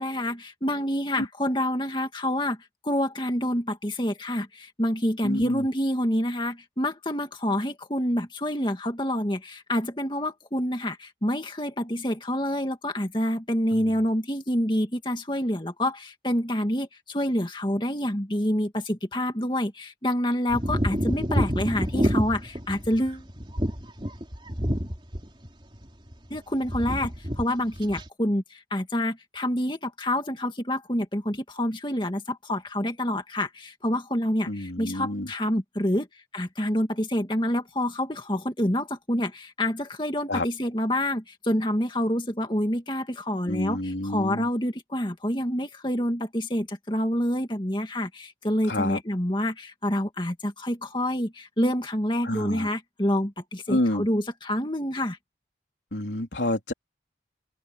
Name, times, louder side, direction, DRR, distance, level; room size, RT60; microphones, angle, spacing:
voice 1, 0.0-2.6 2.8-23.3 26.3-36.1 36.3-55.2, left 1 dB, 25° left, 2.2 m, -27 dB
voice 2, 5.2-5.7 13.7-13.8 34.5-35.3 40.3-40.5 43.5-44.5 48.7-49.0 52.2-52.7 53.7-54.1 55.9-56.7, left 1 dB, 85° left, 3.5 m, -28 dB
sound 1, 20.5-25.5 25.7-26.4 26.6-27.4 27.7-28.1, equal, 30° right, 4.1 m, -28 dB
open air
head